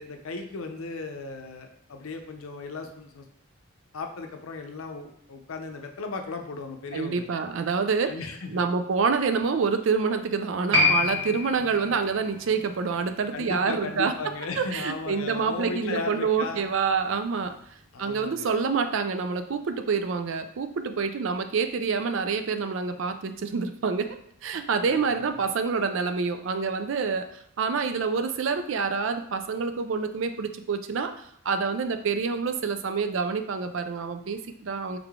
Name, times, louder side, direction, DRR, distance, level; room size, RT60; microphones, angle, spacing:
voice 1, 0.0-3.3 3.9-7.2 8.1-8.6 13.3-16.6 17.9-18.5 25.1-25.4, left 3 dB, 75° left, 5 dB, 0.6 m, -36 dB
voice 2, 6.9-8.1 8.5-14.1 14.6-17.6 18.0-24.2 24.4-27.3 27.6-31.1 31.4-35.0, right 5 dB, 60° right, 8 dB, 0.4 m, -27 dB
Piano, 10.7-17.7 17.9-18.0, left 3 dB, 80° right, 1.4 m, -30 dB
3.6 x 3.4 x 3.5 m, 0.70 s
head